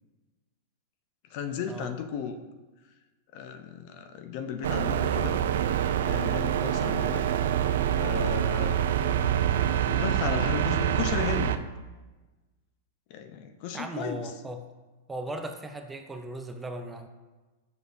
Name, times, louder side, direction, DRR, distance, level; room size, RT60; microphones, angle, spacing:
voice 1, 1.3-2.3 3.3-5.4 5.9-7.2 8.0-11.6 13.1-14.2, left 7 dB, 55° left, 7 dB, 0.6 m, -35 dB
sound 1, 4.6-11.6, right 10 dB, 75° right, 0.3 m, -26 dB
voice 2, 13.7-14.6 15.1-17.1, right 1 dB, 10° right, 6 dB, 0.5 m, -37 dB
6.9 x 6.3 x 2.7 m, 1.2 s
hypercardioid pair, 120°, 0 cm